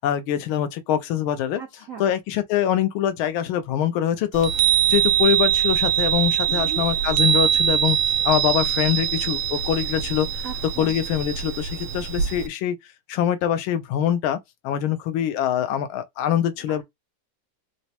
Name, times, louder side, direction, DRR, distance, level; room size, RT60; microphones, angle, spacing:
voice 1, 0.0-1.6 2.0-4.5 4.9-10.4 10.8-12.8 13.1-14.4 14.6-16.8, left 10 dB, 85° left, 1.4 m, -24 dB
voice 2, 1.6-2.1 6.5-6.9 10.4-11.0 16.7-16.8, right 6 dB, 70° right, 0.7 m, -38 dB
Chime, 4.3-12.5, right 9 dB, 90° right, 1.4 m, -23 dB
4.0 x 2.1 x 2.8 m
omnidirectional pair, 2.2 m